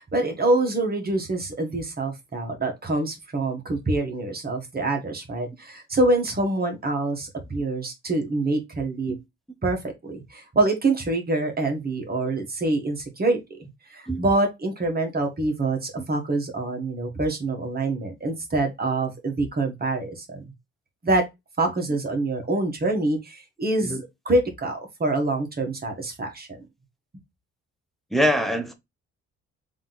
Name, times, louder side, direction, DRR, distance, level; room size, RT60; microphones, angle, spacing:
voice 1, 0.0-9.1 9.6-20.4 21.0-21.2 21.6-26.6, right 2 dB, 30° right, 1.4 m, -26 dB
voice 2, 28.1-28.7, equal, ahead, 0.9 m, -23 dB
3.6 x 2.9 x 3.9 m
cardioid pair, 90°, 30 cm